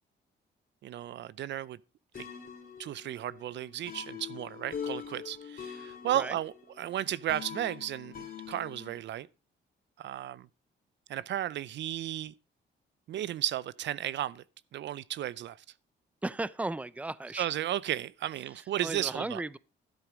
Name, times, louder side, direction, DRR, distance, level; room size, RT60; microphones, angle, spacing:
voice 1, 0.8-1.8 2.2-2.3 2.8-9.3 10.0-10.5 11.1-12.3 13.1-14.4 14.7-15.6 17.3-19.4, right 12 dB, 65° right, 0.5 m, -34 dB
sound 1, 2.1-9.0, left 8 dB, 45° left, 2.4 m, -43 dB
voice 2, 16.2-17.5 18.8-19.6, right 2 dB, 5° right, 0.6 m, -35 dB
12.5 x 8.1 x 5.0 m
cardioid pair, 90°, 20 cm